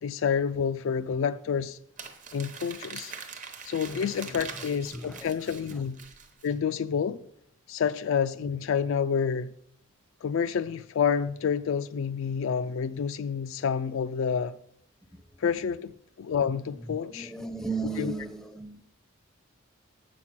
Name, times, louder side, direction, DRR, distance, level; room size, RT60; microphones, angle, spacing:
voice 1, 0.0-1.8 2.3-3.1 3.6-6.0 6.4-7.2 7.7-9.5 10.2-14.6 15.4-17.3 18.0-18.1, left 7 dB, 60° left, 0.3 m, -28 dB
Crumpling crinkling, 2.0-6.5, right 6 dB, 35° right, 0.9 m, -43 dB
voice 2, 3.9-4.6 4.9-5.3 5.7-5.8 15.1-15.2 16.7-18.8, right 4 dB, ahead, 0.6 m, -37 dB
7.3 x 5.9 x 6.0 m
head